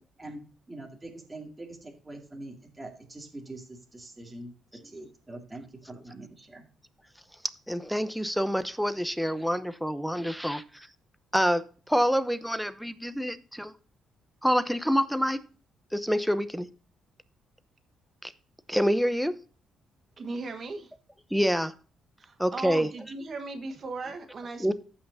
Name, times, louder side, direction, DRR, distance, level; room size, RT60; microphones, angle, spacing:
voice 1, 0.7-4.5 4.8-6.7, right 2 dB, 20° right, 0 dB, 2.4 m, -44 dB
voice 2, 7.7-10.9 11.3-13.7 14.4-15.4 15.9-16.7 18.2-18.3 18.7-19.3 21.3-21.7 22.4-22.9 24.6-24.7, equal, ahead, 13 dB, 0.8 m, -27 dB
voice 3, 20.2-20.9 22.2-24.7, right 3 dB, 45° right, 7 dB, 1.4 m, -37 dB
15.0 x 5.7 x 2.7 m, 0.37 s
cardioid pair, 90°, 0 cm